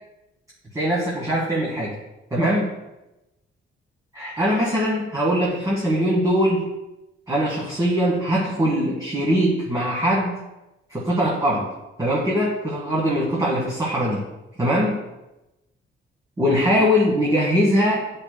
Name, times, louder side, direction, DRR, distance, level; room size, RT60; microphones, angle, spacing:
voice 1, 0.7-1.9 2.3-2.7 4.1-6.7 7.3-10.4 10.9-11.7 12.0-14.2 14.6-15.0 16.4-18.2, equal, 15° right, -6 dB, 1.3 m, -21 dB
10.5 x 5.4 x 2.2 m, 0.97 s
cardioid pair, 170°, 21 cm